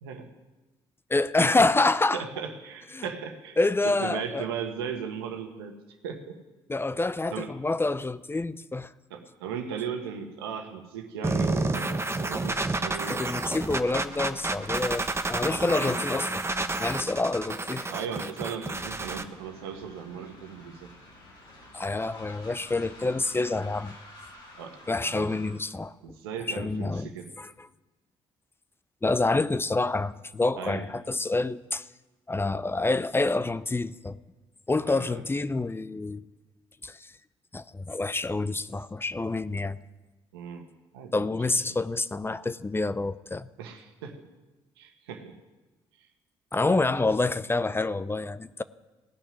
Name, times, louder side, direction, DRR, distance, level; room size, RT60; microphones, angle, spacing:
voice 1, 1.1-2.2 2.9-3.1 3.6-4.4 6.7-8.9 13.1-16.4 16.8-17.9 21.7-23.9 24.9-26.2 26.5-27.1 27.4-27.5 29.0-31.9 32.3-34.2 34.7-36.2 36.8-37.1 37.5-39.8 41.1-43.5 46.5-48.6, left 2 dB, 20° left, 0.6 m, -27 dB
voice 2, 2.1-3.6 3.8-5.8 6.0-6.4 7.3-7.5 9.1-13.3 15.6-15.9 17.9-20.9 24.5-24.8 25.0-25.3 26.0-27.3 30.6-30.9 34.8-35.2 40.3-40.7 40.9-41.3 43.6-44.3 44.8-45.3 46.0-46.1 46.6-46.9, right 7 dB, 90° right, 1.3 m, -37 dB
sound 1, 11.2-19.2, right 2 dB, 20° right, 1.1 m, -30 dB
Train, 18.6-25.7, left 1 dB, 90° left, 4.1 m, -50 dB
17.5 x 6.0 x 9.6 m
hypercardioid pair, 50°, 12 cm